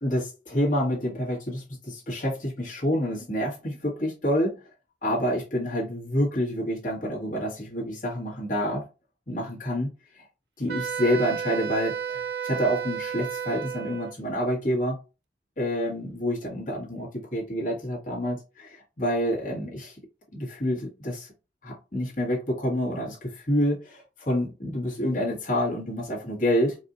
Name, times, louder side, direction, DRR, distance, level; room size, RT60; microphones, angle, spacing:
voice 1, 0.0-4.5 5.0-8.8 9.3-10.3 10.6-15.0 15.6-20.0 20.3-21.3 21.6-26.8, equal, 50° left, 1.9 m, -28 dB
Wind instrument woodwind instrument, 10.7-14.1, right 8 dB, 65° right, 0.5 m, -32 dB
4.7 x 2.8 x 2.6 m
head